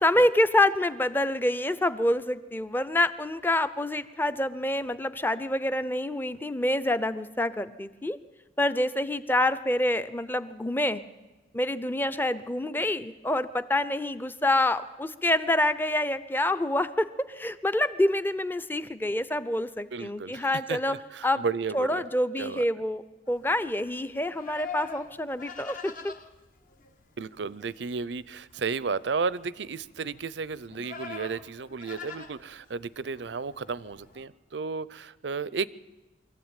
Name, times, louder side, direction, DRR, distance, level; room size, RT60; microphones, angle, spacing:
voice 1, 0.0-8.2 8.6-11.0 11.5-20.9 21.2-21.4 21.7-26.1, left 1 dB, 10° left, 14 dB, 0.7 m, -27 dB
voice 2, 19.9-22.0 22.4-22.6 27.2-35.7, right 5 dB, 75° right, 19 dB, 0.6 m, -33 dB
Livestock farm animals working animals, 23.3-34.2, left 6 dB, 50° left, 1.5 m, -45 dB
24.0 x 14.5 x 9.0 m, 1.2 s
head